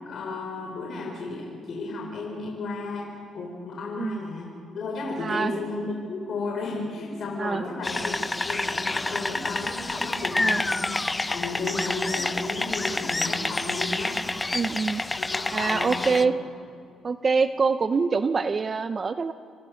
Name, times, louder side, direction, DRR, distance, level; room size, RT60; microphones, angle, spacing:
voice 1, 0.0-14.2 15.2-16.3, left 3 dB, 60° left, -1 dB, 4.9 m, -33 dB
voice 2, 5.2-5.5 7.4-7.6 10.4-10.6 14.5-15.0 15.5-16.3 17.0-19.3, right 4 dB, 35° right, 10 dB, 0.7 m, -25 dB
sound 1, 7.8-16.2, left 2 dB, 20° left, 0.6 m, -28 dB
28.5 x 26.5 x 6.5 m, 2.3 s
cardioid pair, 90°, 0 cm